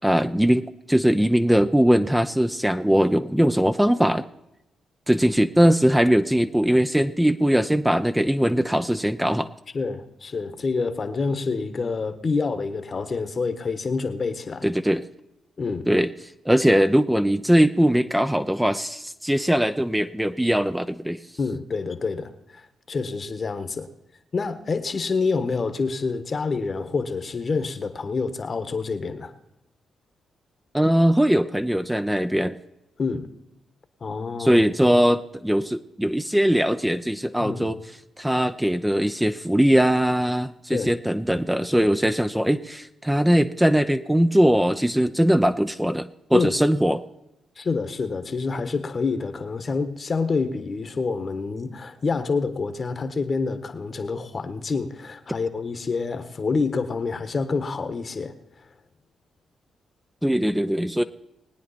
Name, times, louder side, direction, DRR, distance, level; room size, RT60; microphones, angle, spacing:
voice 1, 0.0-4.2 5.1-9.5 14.6-15.0 15.9-16.1 16.4-21.2 30.7-32.6 34.4-37.8 38.2-47.0 60.2-61.0, equal, 5° right, 0.7 m, -20 dB
voice 2, 9.7-14.7 15.6-15.9 21.4-23.9 24.3-29.3 33.0-33.3 34.0-34.6 37.4-37.7 40.7-40.9 46.3-46.5 47.6-58.4, left 4 dB, 45° left, 1.4 m, -27 dB
21.0 x 9.3 x 4.3 m
supercardioid pair, 50°, 0 cm